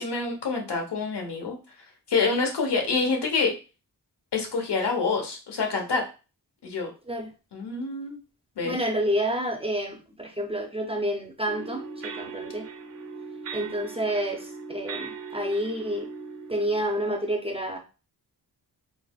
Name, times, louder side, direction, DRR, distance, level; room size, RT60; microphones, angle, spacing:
voice 1, 0.0-1.6 2.1-3.5 4.3-6.0 6.6-6.9 7.5-8.2 8.6-8.8, left 4 dB, 80° left, 2 dB, 1.1 m, -26 dB
voice 2, 8.6-12.7 13.5-16.1 16.5-17.8, equal, 15° right, 1 dB, 0.5 m, -29 dB
sound 1, 11.4-16.8, right 5 dB, 80° right, 1.1 m, -39 dB
3.9 x 3.0 x 2.3 m, 0.32 s
wide cardioid pair, 150°, 40 cm